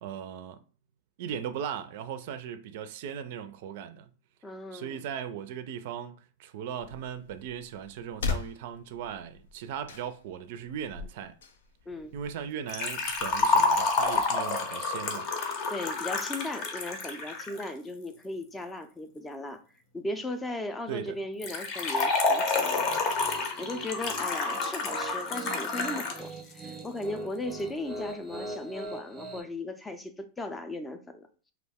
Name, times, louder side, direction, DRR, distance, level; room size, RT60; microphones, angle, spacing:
voice 1, 0.0-0.6 1.2-4.1 4.7-11.3 12.1-15.3 20.9-21.2, right 8 dB, 60° right, 0.3 m, -38 dB
voice 2, 4.4-5.0 11.9-12.1 15.7-19.6 19.9-22.9 23.6-31.5, left 1 dB, 15° left, 0.4 m, -37 dB
sound 1, 6.8-14.2, left 5 dB, 80° left, 0.4 m, -41 dB
Liquid, 12.7-17.7 21.4-26.2 26.5-26.6 27.5-27.6, left 3 dB, 45° left, 0.7 m, -29 dB
Piano, 22.6-29.4, right 2 dB, 10° right, 0.7 m, -42 dB
2.3 x 2.1 x 3.4 m
hypercardioid pair, 110°, 0 cm